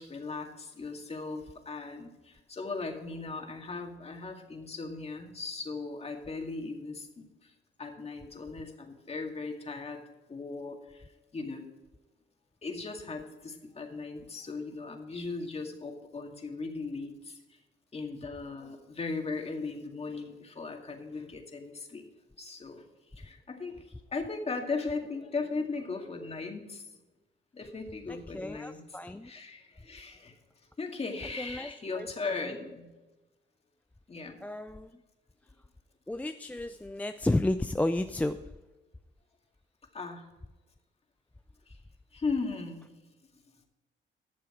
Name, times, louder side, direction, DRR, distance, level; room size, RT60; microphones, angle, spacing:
voice 1, 0.0-7.5 7.8-10.0 10.3-11.0 11.3-11.6 12.6-17.6 17.9-22.1 22.4-22.8 23.2-26.9 27.5-28.8 29.2-30.4 30.8-32.9 34.1-34.4 39.9-40.3 41.7-41.8 42.1-42.9, left 3 dB, 30° left, 2 dB, 2.0 m, -38 dB
voice 2, 28.1-29.3 31.4-32.6 34.4-34.9 36.1-38.4, left 1 dB, 5° left, 8 dB, 0.4 m, -32 dB
12.0 x 6.8 x 4.9 m, 1.1 s
cardioid pair, 90°, 20 cm